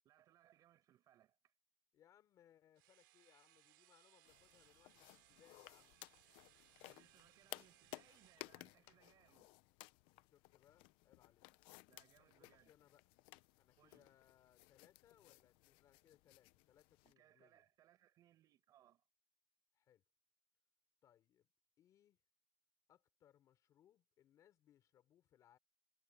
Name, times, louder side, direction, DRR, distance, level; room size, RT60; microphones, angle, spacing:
voice 1, 0.0-1.5 6.8-9.6 11.9-12.7 13.8-14.1 17.0-19.0, right 12 dB, 35° right, 6.0 m, -71 dB
voice 2, 1.9-6.0 7.5-7.7 10.1-11.5 12.2-13.0 13.6-17.6 19.7-20.0 21.0-21.5 21.8-22.2 22.9-25.6, left 11 dB, 30° left, 4.0 m, -71 dB
sound 1, 2.8-8.5, right 20 dB, 80° right, 3.9 m, -70 dB
sound 2, 4.2-17.1, left 21 dB, 50° left, 0.9 m, -59 dB
supercardioid pair, 155°, 11 cm